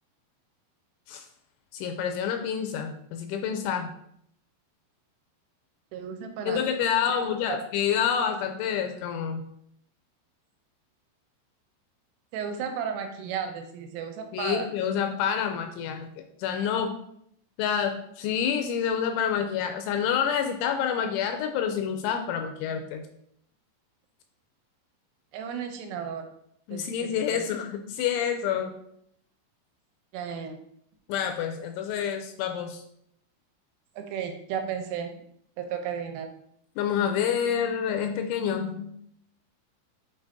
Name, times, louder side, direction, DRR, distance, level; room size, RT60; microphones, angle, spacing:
voice 1, 1.7-3.9 6.5-9.4 14.3-16.1 16.4-17.0 17.6-23.1 26.7-28.8 31.1-32.8 36.8-39.0, left 8 dB, 85° left, 6 dB, 2.8 m, -28 dB
voice 2, 5.9-6.6 7.5-7.6 12.3-14.7 25.3-26.3 26.7-27.5 30.1-30.6 34.0-35.1 35.6-36.3, right 7 dB, 90° right, 5 dB, 3.2 m, -34 dB
8.2 x 5.1 x 2.7 m, 0.71 s
omnidirectional pair, 5.7 m